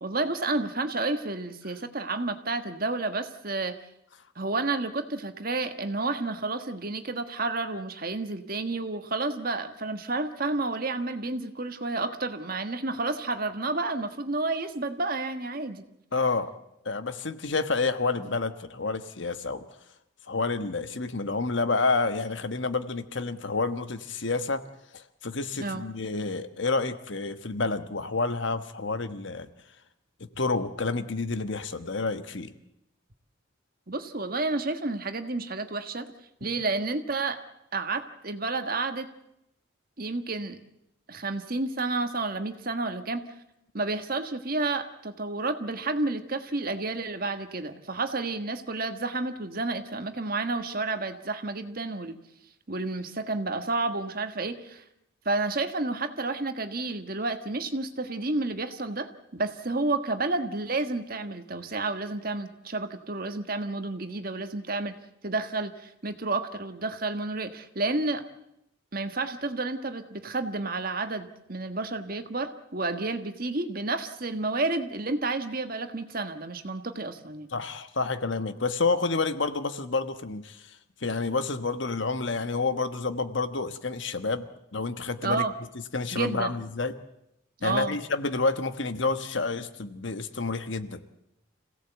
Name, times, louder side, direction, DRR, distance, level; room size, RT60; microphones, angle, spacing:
voice 1, 0.0-3.8 4.3-15.8 25.6-25.8 33.9-36.1 36.4-37.4 37.7-39.1 40.0-40.6 41.1-43.3 43.7-52.2 52.7-54.8 55.2-64.9 65.2-68.2 68.9-77.5 85.2-85.5 86.1-86.5 87.6-88.0, right 3 dB, 45° right, 8 dB, 1.5 m, -30 dB
voice 2, 16.1-16.5 16.8-19.6 20.3-24.6 24.9-29.5 30.4-32.5 77.5-80.6 81.0-84.5 84.7-85.4 85.9-87.0 87.6-91.0, left 3 dB, 65° left, 10 dB, 1.3 m, -29 dB
26.5 x 17.0 x 8.0 m, 0.84 s
head